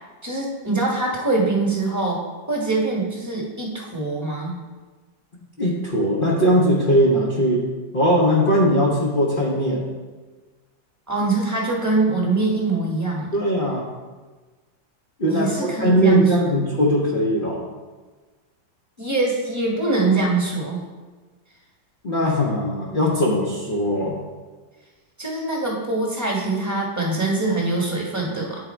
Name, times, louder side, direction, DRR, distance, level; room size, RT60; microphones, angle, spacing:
voice 1, 0.2-2.2 2.5-4.6 11.1-13.3 15.3-16.6 19.0-20.9 25.2-28.7, right 3 dB, 10° right, -3 dB, 1.2 m, -23 dB
voice 2, 5.6-7.7 7.9-9.9 13.3-13.9 15.2-17.6 22.0-24.2, equal, 40° left, -4 dB, 0.8 m, -20 dB
9.5 x 3.6 x 4.4 m, 1.3 s
omnidirectional pair, 2.1 m